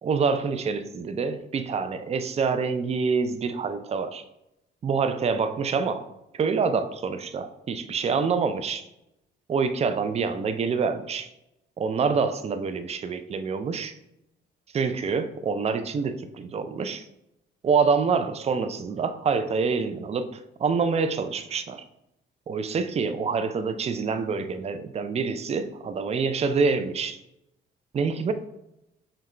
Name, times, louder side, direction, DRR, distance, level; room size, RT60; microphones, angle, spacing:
voice 1, 0.0-4.2 4.8-6.1 6.3-8.9 9.5-11.3 11.8-14.0 14.7-17.1 17.6-21.9 22.5-27.2 27.9-28.3, right 5 dB, 30° right, 9 dB, 0.4 m, -26 dB
5.6 x 2.3 x 3.2 m, 0.84 s
cardioid pair, 90°, 20 cm